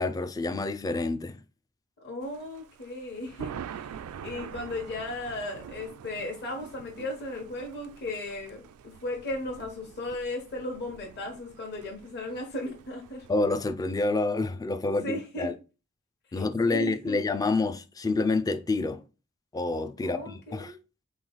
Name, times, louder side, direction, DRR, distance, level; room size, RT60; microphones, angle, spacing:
voice 1, 0.0-1.3 13.3-15.6 16.3-19.0 19.5-20.7, left 3 dB, 15° left, 0.3 m, -28 dB
voice 2, 2.0-3.9 4.2-13.3 14.8-15.5 16.3-17.2 20.0-20.8, left 1 dB, 50° left, 1.1 m, -36 dB
Thunder, 2.2-13.7, right 7 dB, 80° right, 0.3 m, -45 dB
4.3 x 3.1 x 3.9 m
head